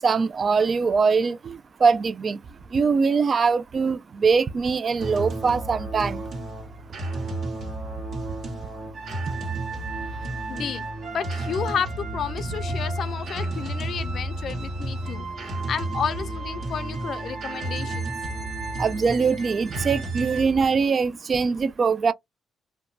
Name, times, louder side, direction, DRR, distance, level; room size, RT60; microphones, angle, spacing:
voice 1, 0.0-2.4 2.7-6.2 18.8-22.1, right 5 dB, 45° right, 0.4 m, -22 dB
sound 1, 5.0-20.4, right 2 dB, 60° right, 1.5 m, -31 dB
voice 2, 10.2-10.9 11.1-18.1, left 7 dB, 60° left, 0.4 m, -32 dB
2.8 x 2.1 x 2.5 m
cardioid pair, 90°, 0 cm